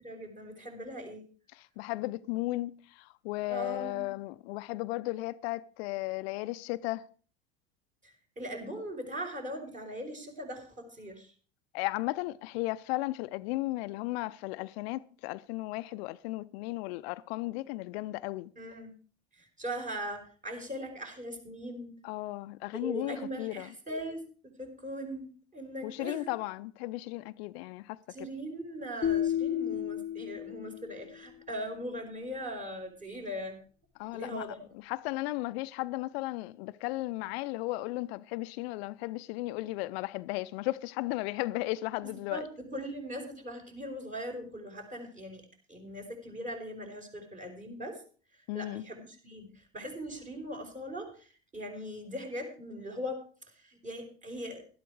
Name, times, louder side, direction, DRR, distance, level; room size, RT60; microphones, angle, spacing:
voice 1, 0.0-1.2 3.5-4.0 8.0-11.3 18.6-18.9 19.3-21.9 22.8-24.2 24.6-26.3 28.1-33.6 34.1-34.7 42.0-45.4 45.7-48.0 48.5-53.2 53.6-54.6, equal, 25° right, 4.8 m, -40 dB
voice 2, 1.5-7.0 11.7-18.5 22.0-23.7 25.8-28.3 34.0-34.5 34.8-42.4 48.5-48.8, left 19 dB, 70° left, 0.6 m, -35 dB
sound 1, 29.0-31.2, left 10 dB, 25° left, 1.0 m, -32 dB
12.0 x 12.0 x 4.8 m
hypercardioid pair, 80°, 33 cm